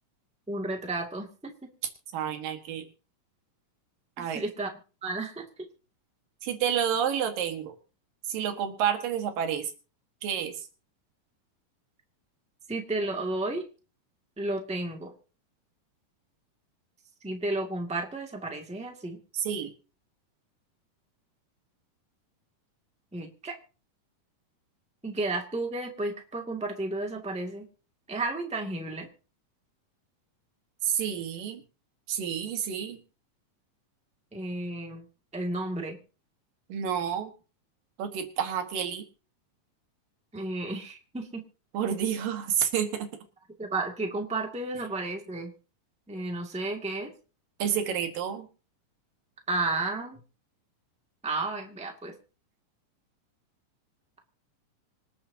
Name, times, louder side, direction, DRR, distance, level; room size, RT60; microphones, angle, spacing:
voice 1, 0.5-1.7 4.2-4.7 5.0-5.4 12.7-13.6 14.4-15.1 17.2-19.2 23.1-23.6 25.0-27.6 28.1-29.1 34.3-35.0 35.3-36.0 40.3-41.4 43.6-45.5 46.1-47.1 49.5-50.2 51.2-52.2, right 2 dB, 5° right, 2 dB, 1.4 m, -32 dB
voice 2, 2.1-2.8 4.2-4.4 6.4-7.7 8.3-9.7 10.2-10.6 19.3-19.7 30.8-31.6 32.1-33.0 36.7-37.3 38.0-39.0 41.7-43.1 47.6-48.5, right 8 dB, 90° right, 6 dB, 3.3 m, -29 dB
26.0 x 8.9 x 2.8 m, 0.36 s
omnidirectional pair, 3.8 m